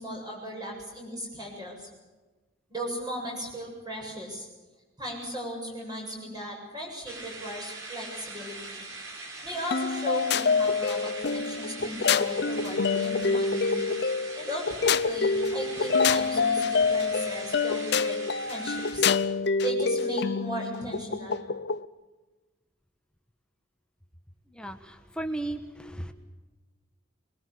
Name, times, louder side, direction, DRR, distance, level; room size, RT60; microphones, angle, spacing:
voice 1, 0.0-1.9 2.7-4.5 5.0-8.8 9.4-13.8 14.4-18.2 18.4-19.1 19.6-21.4, equal, 20° right, -1 dB, 7.9 m, -37 dB
sound 1, 7.1-19.0, right 2 dB, 85° right, 5.5 m, -42 dB
sound 2, 9.7-21.8, left 5 dB, 55° left, 0.7 m, -26 dB
voice 2, 24.6-26.1, right 1 dB, 5° left, 6 dB, 1.3 m, -35 dB
24.0 x 22.0 x 6.9 m, 1.2 s
head